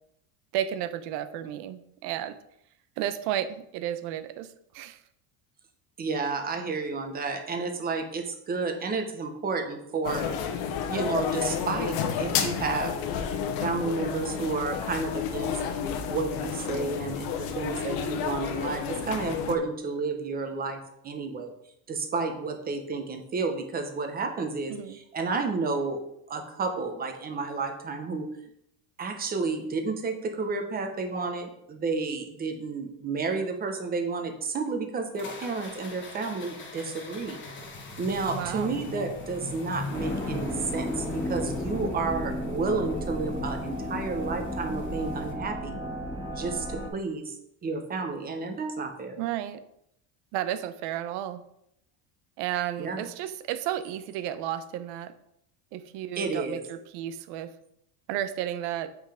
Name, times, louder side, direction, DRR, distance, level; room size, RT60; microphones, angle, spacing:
voice 1, 0.5-2.4 3.0-5.0 24.7-25.0 38.3-38.8 49.2-49.6 50.3-51.4 52.4-55.1 55.7-57.5 58.1-58.9, right 11 dB, 60° right, 12 dB, 0.9 m, -32 dB
voice 2, 6.0-10.2 10.9-12.9 13.6-15.5 16.1-21.5 21.9-26.0 26.3-28.3 29.0-37.4 38.0-45.8 46.3-47.3 47.6-49.2 52.8-53.0 56.2-56.6, right 4 dB, 20° right, 5 dB, 1.0 m, -31 dB
sound 1, 10.0-19.6, left 7 dB, 50° left, 1.1 m, -31 dB
sound 2, 35.1-45.3, left 3 dB, 25° left, 1.3 m, -41 dB
sound 3, 39.9-46.9, left 1 dB, 5° left, 2.2 m, -33 dB
8.0 x 5.9 x 5.0 m, 0.75 s
cardioid pair, 170°, 45 cm